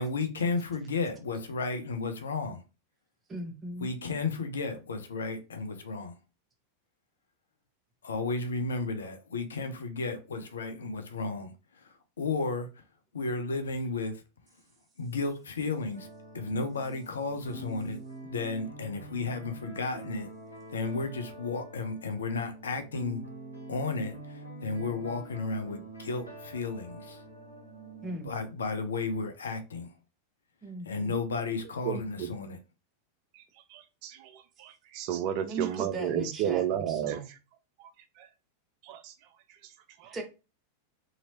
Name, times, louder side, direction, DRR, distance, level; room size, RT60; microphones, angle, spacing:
voice 1, 0.0-2.6 3.8-6.1 8.0-12.8 13.1-14.2 15.0-16.1 16.3-20.3 20.7-23.2 23.7-27.2 28.2-29.9 30.9-32.6, left 3 dB, 70° left, 0.5 m, -33 dB
voice 2, 3.3-3.9 28.0-28.3 30.6-31.1 35.4-37.3 40.0-40.2, right 2 dB, 20° right, 0.9 m, -38 dB
sound 1, 15.9-28.2, right 2 dB, 85° left, 1.1 m, -46 dB
voice 3, 31.8-32.3 33.3-33.4 33.7-37.4 37.8-37.9 38.2-38.3 38.8-39.1 39.6-39.7 40.0-40.1, right 10 dB, 45° right, 0.3 m, -33 dB
2.9 x 2.7 x 2.8 m
figure-of-eight pair, 90°, 0 cm